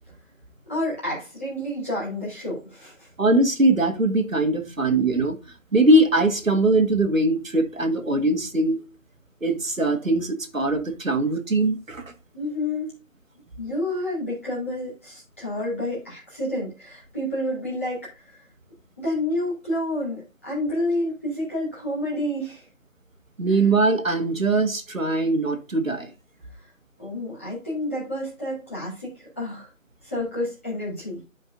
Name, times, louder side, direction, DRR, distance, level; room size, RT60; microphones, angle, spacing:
voice 1, 0.7-3.1 12.3-12.9 13.6-18.4 19.0-22.7 26.6-26.7 27.0-29.7 30.0-31.2, left 1 dB, 10° left, 2.2 m, -29 dB
voice 2, 3.2-5.4 5.7-8.8 9.4-12.0 23.4-26.1, right 2 dB, 75° right, 1.8 m, -21 dB
12.0 x 5.2 x 2.6 m
figure-of-eight pair, 170°, 40 cm